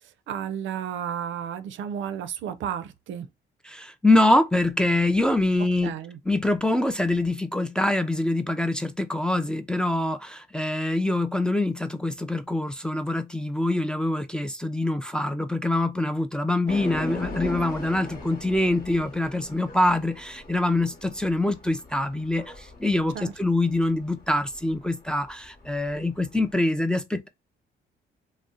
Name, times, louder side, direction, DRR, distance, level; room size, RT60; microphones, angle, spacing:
voice 1, 0.3-3.3 5.8-6.2 23.1-23.3, right 9 dB, 75° right, 0.4 m, -32 dB
voice 2, 3.6-5.9 6.3-27.3, left 2 dB, 5° left, 0.3 m, -24 dB
sound 1, 16.7-26.5, left 2 dB, 50° left, 1.0 m, -39 dB
2.5 x 2.0 x 3.7 m
cardioid pair, 90°, 20 cm